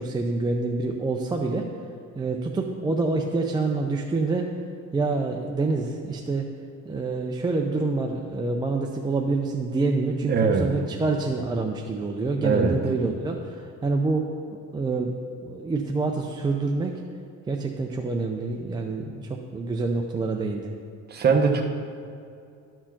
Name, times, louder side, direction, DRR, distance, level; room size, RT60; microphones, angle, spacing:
voice 1, 0.0-1.7 2.1-4.5 4.9-6.5 6.8-14.3 14.7-15.2 15.4-17.0 17.5-20.7, right 3 dB, 15° right, 1 dB, 0.4 m, -27 dB
voice 2, 10.2-10.8 12.4-12.8 21.1-21.6, right 5 dB, 30° right, 3 dB, 0.9 m, -21 dB
11.0 x 4.5 x 5.8 m, 2.5 s
cardioid pair, 145°, 31 cm